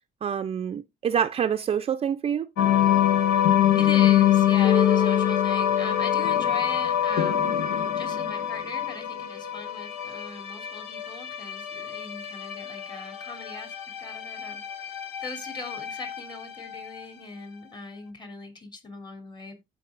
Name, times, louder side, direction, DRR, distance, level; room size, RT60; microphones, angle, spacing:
voice 1, 0.2-2.5, right 8 dB, 35° right, 0.5 m, -26 dB
sound 1, 2.6-17.0, left 10 dB, 90° left, 1.3 m, -25 dB
voice 2, 3.7-19.5, left 3 dB, 25° left, 3.0 m, -40 dB
15.0 x 5.3 x 2.5 m
cardioid pair, 110°, 17 cm